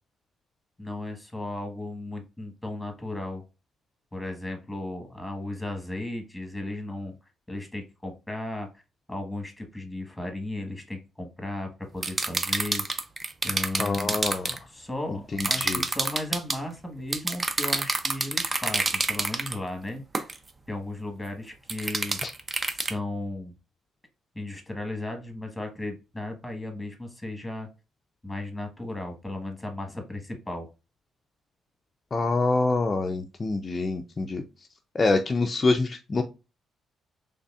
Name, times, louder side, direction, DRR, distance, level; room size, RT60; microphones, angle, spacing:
voice 1, 0.8-3.4 4.1-7.1 7.5-8.7 9.1-12.9 13.4-14.2 14.7-20.0 20.7-22.2 22.7-23.5 24.3-27.7 28.2-30.7, left 2 dB, 5° left, 4 dB, 1.3 m, -35 dB
sound 1, 12.0-14.6 15.4-16.6 17.1-19.6 20.1-20.4 21.7-22.9, right 3 dB, 30° right, 0.6 m, -28 dB
voice 2, 13.8-14.6 15.4-15.8 22.2-22.3 32.1-34.4 34.9-36.2, left 3 dB, 35° left, 4 dB, 0.4 m, -26 dB
4.0 x 3.3 x 2.3 m, 0.29 s
cardioid pair, 90°, 0 cm